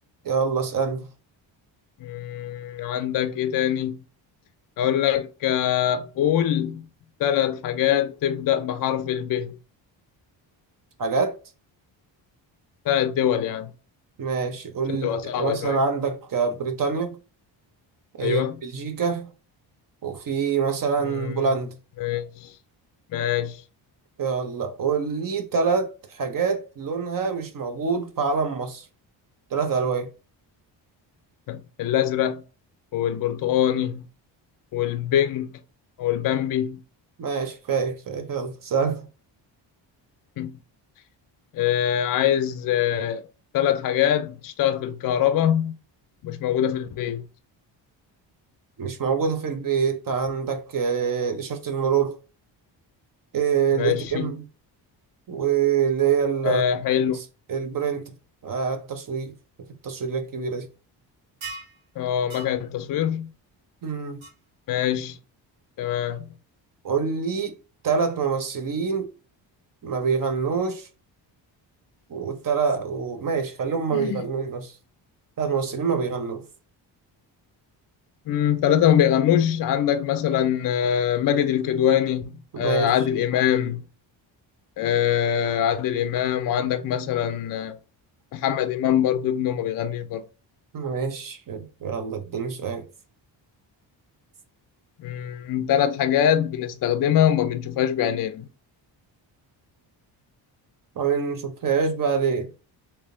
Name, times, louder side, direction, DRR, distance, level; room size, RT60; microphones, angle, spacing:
voice 1, 0.2-1.1 11.0-11.4 14.2-17.2 18.2-19.3 20.0-21.8 24.2-28.8 29.5-30.1 37.2-39.1 48.8-52.2 53.3-54.4 55.3-56.6 57.5-58.1 58.4-59.3 59.8-60.7 63.8-64.2 66.8-67.5 67.8-69.1 69.8-70.9 72.1-74.7 75.4-76.4 82.5-82.9 90.7-92.8 101.0-102.5, right 6 dB, 45° right, 0.8 m, -25 dB
voice 2, 2.0-4.0 4.8-6.9 7.2-9.6 12.9-13.7 14.9-15.8 18.2-18.6 21.1-21.4 22.0-22.5 23.1-23.6 31.5-32.4 32.9-34.0 34.7-35.5 36.0-36.8 40.4-40.6 41.5-43.2 43.5-45.8 46.2-47.2 53.8-54.3 56.4-57.2 62.0-63.3 64.7-65.2 65.8-66.3 73.9-74.2 78.3-83.8 84.8-87.8 88.3-90.2 95.0-98.5, left 10 dB, 50° left, 0.4 m, -23 dB
sound 1, 61.4-61.8 62.3-62.5 64.2-64.3, right 3 dB, 85° right, 1.3 m, -37 dB
3.4 x 2.8 x 2.6 m
cardioid pair, 80°, 46 cm